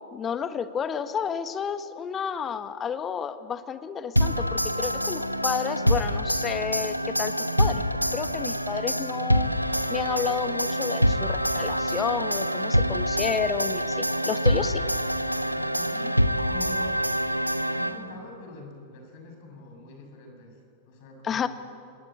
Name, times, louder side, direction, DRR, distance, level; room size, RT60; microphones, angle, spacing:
voice 1, 0.1-7.8 8.1-9.5 9.9-14.8 21.2-21.5, left 7 dB, 25° left, 11 dB, 1.3 m, -31 dB
sound 1, 4.2-18.3, equal, 90° right, 0.8 m, -26 dB
voice 2, 15.5-17.0 17.6-21.5, left 2 dB, 50° left, 3 dB, 6.8 m, -45 dB
27.0 x 20.5 x 8.4 m, 2.5 s
figure-of-eight pair, 90°, 0 cm